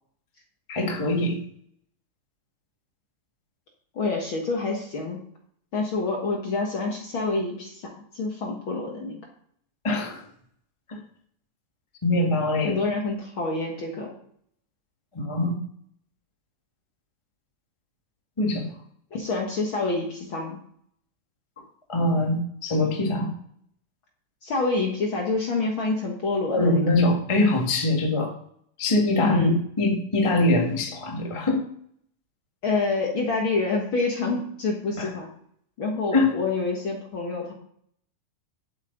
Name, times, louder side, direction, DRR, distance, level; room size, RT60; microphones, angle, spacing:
voice 1, 0.7-1.4 9.8-10.2 10.9-11.0 12.0-12.8 15.1-15.6 18.4-18.7 21.9-23.3 26.5-28.3 28.8-29.5 29.8-31.6 35.0-35.1 36.1-36.3, left 2 dB, 25° left, 0 dB, 0.7 m, -23 dB
voice 2, 3.9-5.2 5.7-9.2 12.6-14.1 19.1-20.6 24.4-26.8 29.2-29.5 32.6-35.3 35.8-37.5, left 3 dB, 50° left, 0 dB, 1.6 m, -27 dB
11.0 x 8.2 x 3.9 m, 0.65 s
omnidirectional pair, 4.2 m